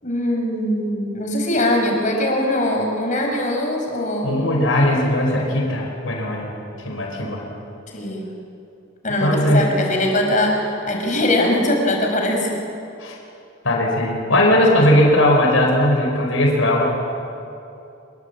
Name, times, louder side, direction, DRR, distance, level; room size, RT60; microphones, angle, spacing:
voice 1, 0.0-4.3 7.9-8.3 9.0-12.6, left 1 dB, 40° left, 1 dB, 5.5 m, -21 dB
voice 2, 4.2-6.5 6.8-7.4 9.2-9.7 13.0-13.2 13.6-16.8, left 1 dB, 75° left, -1 dB, 5.3 m, -18 dB
26.5 x 22.5 x 8.5 m, 2.7 s
head